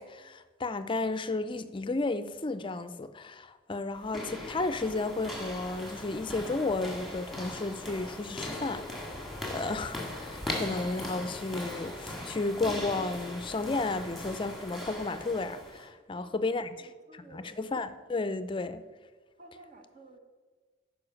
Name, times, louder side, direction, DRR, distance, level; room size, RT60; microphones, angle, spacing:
voice 1, 0.0-8.8 9.5-16.7 17.1-18.8, left 3 dB, 25° left, 0.5 m, -33 dB
sound 1, 3.9-15.9, left 1 dB, ahead, 1.8 m, -39 dB
voice 2, 16.1-17.6 19.4-20.2, right 2 dB, 45° right, 1.0 m, -54 dB
9.7 x 5.2 x 6.3 m
head